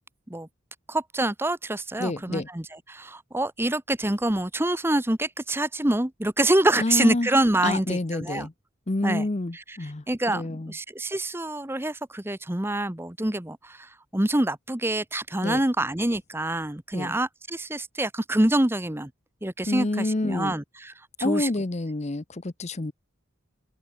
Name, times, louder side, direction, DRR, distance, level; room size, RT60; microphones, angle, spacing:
voice 1, 0.9-8.5 9.0-9.3 9.5-9.8 10.1-19.1 19.4-20.9 21.2-21.5, right 1 dB, 10° right, 0.9 m, -26 dB
voice 2, 2.0-2.5 6.8-7.3 7.6-8.5 8.9-10.7 15.4-15.6 16.9-17.2 19.7-20.6 21.2-22.9, left 2 dB, 30° left, 0.7 m, -28 dB
head